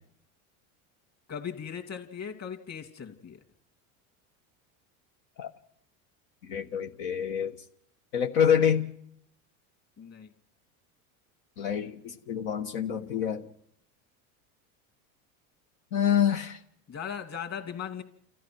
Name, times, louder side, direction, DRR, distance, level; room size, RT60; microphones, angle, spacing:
voice 1, 1.3-3.4 10.0-10.3 16.9-18.0, left 8 dB, 35° left, 5 dB, 2.8 m, -38 dB
voice 2, 6.5-7.5 8.1-8.9 11.6-13.4 15.9-16.6, left 8 dB, 75° left, 4 dB, 1.4 m, -26 dB
30.0 x 14.0 x 6.2 m, 0.72 s
supercardioid pair, 100°, 43 cm